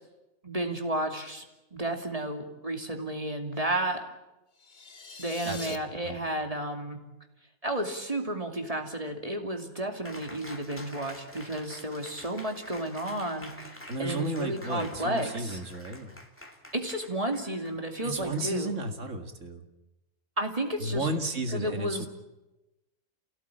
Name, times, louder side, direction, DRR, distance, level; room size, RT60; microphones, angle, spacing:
voice 1, 0.4-1.4 1.7-4.1 5.2-7.0 7.6-15.6 16.7-18.7 20.4-21.1 21.5-22.1, right 1 dB, 25° right, 4 dB, 2.7 m, -32 dB
sound 1, 4.6-5.8, left 5 dB, 35° left, 1.2 m, -43 dB
voice 2, 5.4-6.2 13.9-16.1 18.0-19.6 20.8-22.1, right 2 dB, 60° right, 6 dB, 2.4 m, -33 dB
Cheering, 10.0-19.0, left 1 dB, 10° left, 2.3 m, -48 dB
28.5 x 17.0 x 9.0 m, 1.0 s
omnidirectional pair, 1.5 m